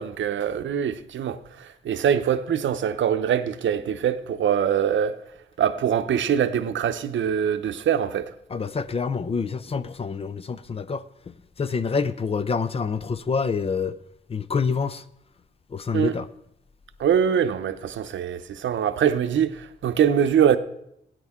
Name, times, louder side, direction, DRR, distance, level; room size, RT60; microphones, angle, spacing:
voice 1, 0.0-5.2 5.6-8.3 15.9-16.1 17.0-20.6, right 8 dB, 85° right, 0.7 m, -23 dB
voice 2, 8.5-14.0 14.3-15.0 15.7-16.3, left 5 dB, 30° left, 0.4 m, -27 dB
17.0 x 9.4 x 3.6 m
wide cardioid pair, 165°, 19 cm